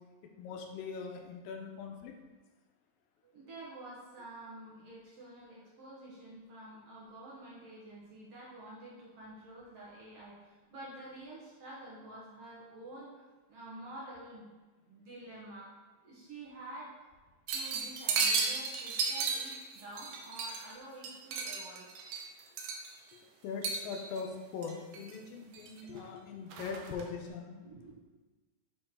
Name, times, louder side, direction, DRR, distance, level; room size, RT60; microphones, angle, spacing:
voice 1, 0.4-2.1 23.4-27.7, left 5 dB, 90° left, 3 dB, 2.4 m, -41 dB
voice 2, 3.2-14.5 14.9-15.7 16.0-17.1 17.5-21.9 26.1-26.2 26.9-27.0 27.6-27.9, right 1 dB, 55° right, -6 dB, 1.8 m, -49 dB
sound 1, 17.5-20.7 21.0-23.1 23.6-24.2 24.6-25.2 25.5-26.1 26.5-27.1, right 4 dB, 75° right, 2.1 m, -34 dB
6.2 x 4.5 x 4.4 m, 1.3 s
omnidirectional pair, 4.0 m